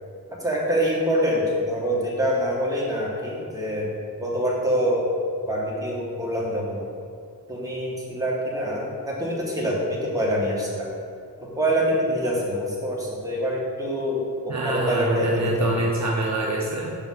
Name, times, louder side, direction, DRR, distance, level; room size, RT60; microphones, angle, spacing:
voice 1, 0.4-3.9 4.2-5.0 5.5-6.8 7.5-10.9 11.4-15.8, equal, 10° right, -5 dB, 1.7 m, -25 dB
voice 2, 14.5-17.0, right 2 dB, 45° right, -3 dB, 0.8 m, -25 dB
6.2 x 5.1 x 4.0 m, 2.3 s
wide cardioid pair, 75°, 37 cm